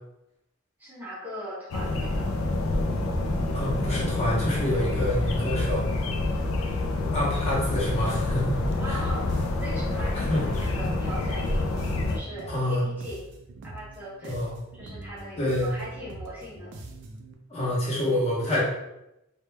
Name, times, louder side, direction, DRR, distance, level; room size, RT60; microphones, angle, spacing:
voice 1, 0.8-2.4 8.8-9.3 9.6-11.7 12.1-13.2 13.6-14.4 14.7-16.7, equal, 10° right, -8 dB, 0.6 m, -39 dB
sound 1, 1.7-12.2, left 2 dB, 75° left, 0.3 m, -27 dB
voice 2, 3.5-5.9 7.1-9.0 10.3-10.4 12.5-12.8 14.2-14.5 15.4-15.7 17.5-18.6, left 1 dB, 30° left, -6 dB, 0.7 m, -27 dB
sound 2, 7.4-17.3, right 2 dB, 60° right, 0.4 m, -44 dB
2.1 x 2.1 x 3.1 m, 0.90 s
head